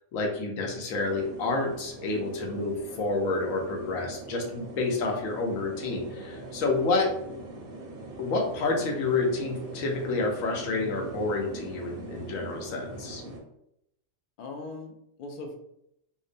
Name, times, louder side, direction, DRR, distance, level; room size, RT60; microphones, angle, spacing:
voice 1, 0.1-7.1 8.2-13.2, left 3 dB, 90° left, 1 dB, 1.0 m, -29 dB
sound 1, 1.0-13.4, right 2 dB, 60° right, 0.7 m, -42 dB
voice 2, 14.4-15.5, left 3 dB, 65° left, 3 dB, 0.5 m, -41 dB
2.8 x 2.0 x 2.5 m, 0.78 s
omnidirectional pair, 1.3 m